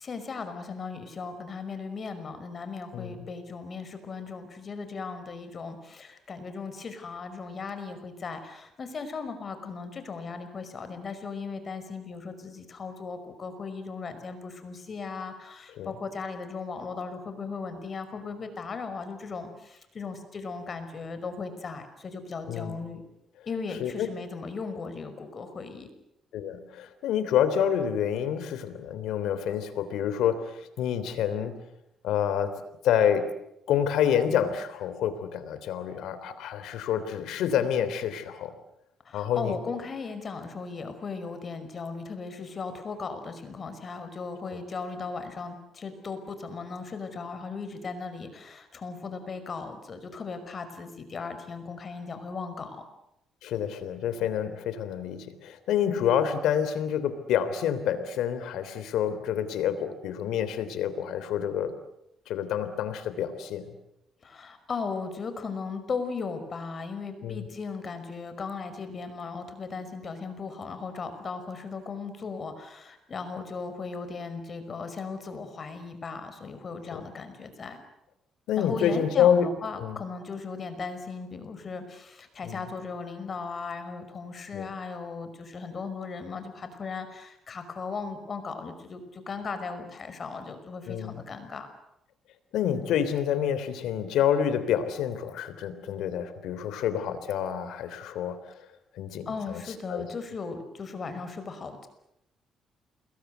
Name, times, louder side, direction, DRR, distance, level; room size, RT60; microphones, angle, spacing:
voice 1, 0.0-23.0 23.5-25.9 39.0-52.8 64.2-77.8 78.6-91.7 99.3-101.9, left 4 dB, 45° left, 9 dB, 5.4 m, -37 dB
voice 2, 22.5-22.8 23.8-24.1 26.3-31.6 32.0-32.5 32.8-33.3 33.7-38.5 39.1-39.6 44.5-44.6 53.4-61.7 62.3-63.7 67.2-67.5 76.9-77.0 78.5-79.5 79.8-80.0 82.4-82.6 84.5-84.7 90.9-91.2 92.5-98.5 98.9-99.6 99.9-100.1, left 9 dB, 85° left, 12 dB, 3.3 m, -28 dB
29.5 x 21.5 x 8.1 m, 0.83 s
cardioid pair, 90°, 0 cm